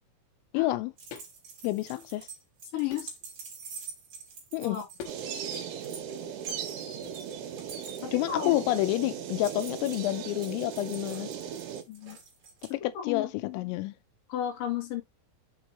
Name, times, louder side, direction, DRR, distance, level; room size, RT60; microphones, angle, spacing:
voice 1, 0.5-0.9 1.6-2.3 4.5-4.8 8.1-11.3 12.8-13.3 13.5-13.9, left 17 dB, 90° left, 3.4 m, -29 dB
sound 1, 1.0-12.7, right 5 dB, 40° right, 4.1 m, -48 dB
sound 2, 1.1-1.3 1.8-2.4 2.9-3.3 5.0-5.2 5.5-6.0 7.0-7.2, left 7 dB, 70° left, 3.5 m, -46 dB
voice 2, 2.7-3.1 4.6-4.9 8.0-8.6 11.9-12.2 12.7-13.6 14.3-15.0, left 10 dB, 50° left, 3.7 m, -34 dB
sea-seagulls-crows-windfilter, 5.1-11.8, right 8 dB, 75° right, 4.1 m, -38 dB
8.2 x 6.5 x 3.0 m
omnidirectional pair, 5.8 m